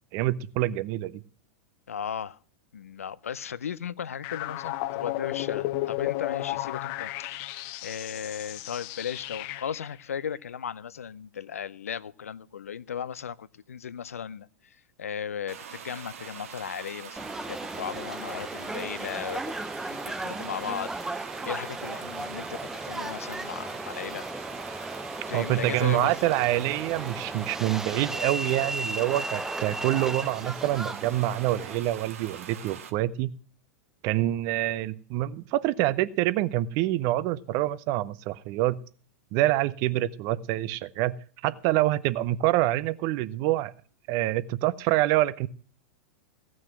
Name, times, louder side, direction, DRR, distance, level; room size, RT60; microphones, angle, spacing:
voice 1, 0.1-1.2 25.3-33.3 34.0-38.8 39.3-41.2 41.4-43.7 44.1-45.5, right 15 dB, 45° right, 0.7 m, -26 dB
voice 2, 1.9-2.4 2.7-7.5 7.8-19.4 19.9-20.9 21.4-24.3 25.3-26.2, left 8 dB, 80° left, 0.5 m, -36 dB
sound 1, 4.2-9.9, left 17 dB, 50° left, 0.8 m, -33 dB
sound 2, 15.5-32.9, right 8 dB, 70° right, 1.5 m, -43 dB
Subway metro underground, 17.2-31.8, right 2 dB, 5° right, 0.5 m, -36 dB
16.0 x 6.3 x 7.5 m
figure-of-eight pair, 95°, 8 cm